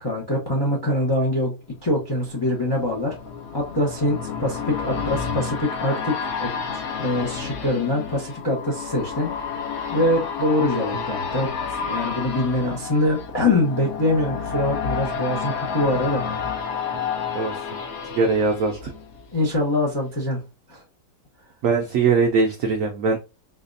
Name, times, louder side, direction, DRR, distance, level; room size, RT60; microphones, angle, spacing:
voice 1, 0.0-1.5 1.8-3.1 3.5-9.3 9.9-11.5 11.9-16.2 19.3-20.4 20.7-20.8, left 1 dB, 25° left, -3 dB, 0.5 m, -24 dB
sound 1, 1.8-19.6 20.0-20.1, left 6 dB, 85° left, 0.6 m, -30 dB
voice 2, 18.1-18.9 21.6-23.2, right 4 dB, 70° right, 3 dB, 0.8 m, -21 dB
4.1 x 2.3 x 2.6 m, 0.28 s
omnidirectional pair, 1.9 m